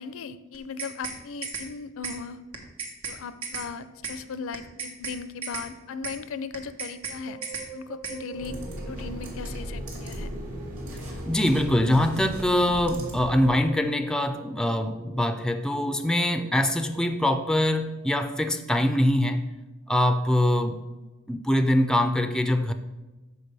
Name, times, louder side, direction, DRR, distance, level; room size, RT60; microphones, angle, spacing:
voice 1, 0.0-2.4 3.1-7.4 7.7-8.6 8.9-10.3, left 5 dB, 65° left, 13 dB, 0.4 m, -37 dB
sound 1, 0.5-1.2 1.4-1.7 2.0-2.2 2.5-3.2 3.4-3.7 4.0-4.2 4.5-5.2 5.4-5.7 6.0-6.2 6.5-7.2 7.4-7.7 8.0-8.2, right 4 dB, 90° right, 1.2 m, -34 dB
sound 2, 6.9-17.1, right 4 dB, 35° right, 1.1 m, -45 dB
sound 3, 8.3-13.6, equal, 70° right, 2.1 m, -36 dB
voice 2, 11.3-19.5 19.9-20.8 21.3-22.7, left 1 dB, 5° left, 8 dB, 0.3 m, -23 dB
12.5 x 4.7 x 3.3 m, 1.1 s
head